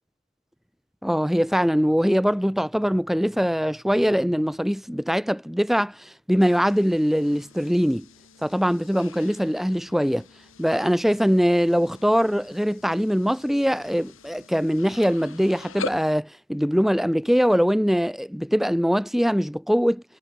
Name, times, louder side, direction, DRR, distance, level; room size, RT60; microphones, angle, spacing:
voice 1, 1.0-8.1 8.4-10.3 10.6-20.0, equal, ahead, 1.3 m, -22 dB
sound 1, 6.4-16.1, left 4 dB, 65° left, 3.1 m, -43 dB
head